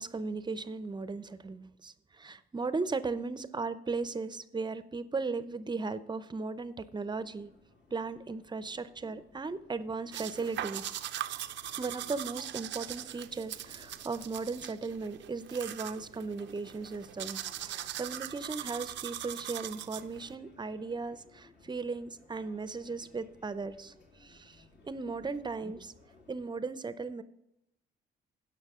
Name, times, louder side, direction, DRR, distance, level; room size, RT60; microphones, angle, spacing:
voice 1, 0.0-7.5 7.9-11.0 11.8-23.9 24.2-25.9 26.3-27.2, right 4 dB, 20° right, 13 dB, 0.6 m, -37 dB
sound 1, 7.0-26.5, left 3 dB, 60° left, 2.2 m, -60 dB
sound 2, 10.1-20.3, right 12 dB, 65° right, 0.5 m, -41 dB
17.0 x 5.9 x 3.6 m, 0.82 s
cardioid pair, 90°, 20 cm